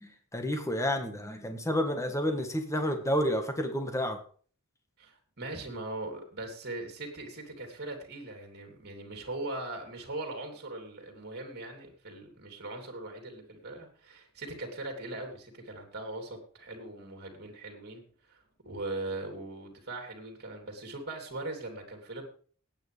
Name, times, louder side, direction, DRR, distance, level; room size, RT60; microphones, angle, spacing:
voice 1, 0.0-4.2, equal, 15° left, 5 dB, 1.6 m, -30 dB
voice 2, 5.0-18.0 18.3-18.4 18.6-22.2, right 2 dB, 50° right, 4 dB, 3.3 m, -40 dB
18.5 x 9.0 x 3.5 m, 0.44 s
head